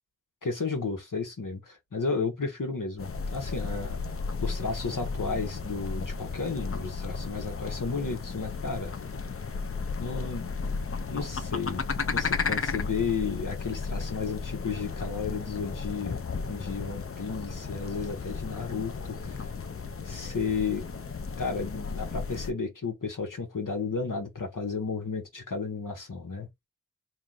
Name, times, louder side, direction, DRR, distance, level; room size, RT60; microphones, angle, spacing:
voice 1, 0.4-4.0 4.4-8.9 10.0-10.6 11.1-11.8 12.1-19.5 20.0-20.8 21.4-26.5, left 4 dB, 85° left, 1.3 m, -33 dB
sound 1, 3.0-22.5, left 4 dB, 45° left, 0.6 m, -34 dB
3.1 x 2.6 x 3.9 m
wide cardioid pair, 45°, 31 cm